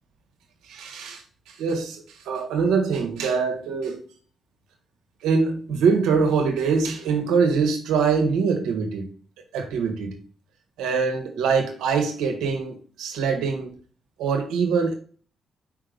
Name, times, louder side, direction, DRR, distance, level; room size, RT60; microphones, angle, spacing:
voice 1, 0.7-4.1 5.2-9.1 9.5-10.2 10.8-13.7 14.2-14.9, right 5 dB, 80° right, 1.4 m, -24 dB
5.6 x 3.7 x 5.1 m
hypercardioid pair, 45°, 0 cm